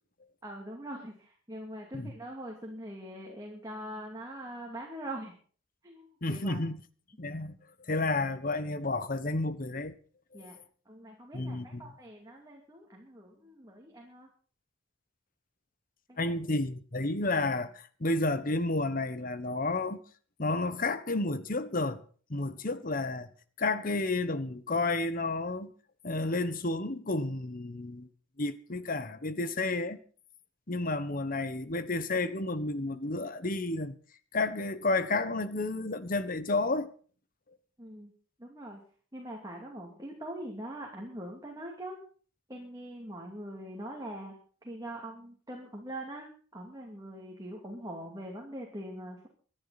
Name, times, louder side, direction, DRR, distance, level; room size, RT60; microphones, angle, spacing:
voice 1, 0.4-5.4 5.8-6.6 10.3-10.6 10.9-14.3 16.1-16.3 37.8-38.1 38.4-38.8 39.1-42.0 42.5-49.3, right 1 dB, 20° right, 2.6 m, -43 dB
voice 2, 6.2-6.8 7.2-7.6 7.9-10.0 11.3-11.9 16.2-20.0 20.4-22.0 22.3-23.3 23.6-25.7 26.0-28.1 28.4-30.0 30.7-33.9 34.3-36.9, left 2 dB, 45° left, 1.2 m, -31 dB
25.0 x 10.0 x 4.2 m
head